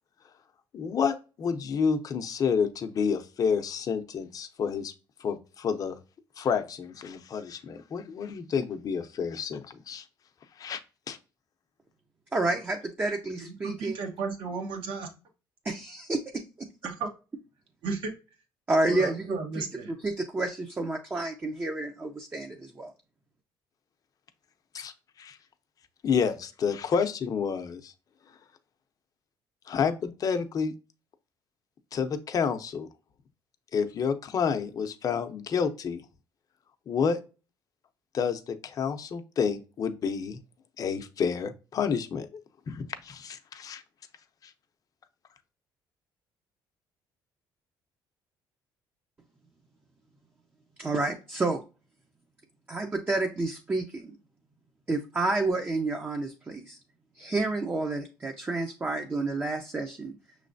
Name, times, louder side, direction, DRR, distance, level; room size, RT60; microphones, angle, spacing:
voice 1, 0.7-4.9 5.2-6.0 6.4-10.0 10.6-10.8 11.1-11.2 24.7-24.9 25.2-25.4 26.0-27.9 29.7-30.7 31.9-32.9 33.7-36.0 36.9-37.2 38.1-40.4 40.8-42.4 42.7-43.8 44.4-44.5, left 6 dB, 45° left, 8 dB, 0.6 m, -29 dB
voice 2, 12.3-14.0 15.6-16.7 18.7-19.7 20.0-22.9 50.8-51.6 52.7-54.2 54.9-56.8 57.2-60.1, right 2 dB, 20° right, 3 dB, 0.6 m, -30 dB
voice 3, 13.4-15.1 16.8-17.1 17.8-18.1 18.9-19.9, right 4 dB, 75° right, 3 dB, 1.2 m, -34 dB
6.0 x 3.2 x 2.6 m, 0.32 s
cardioid pair, 115°, 9 cm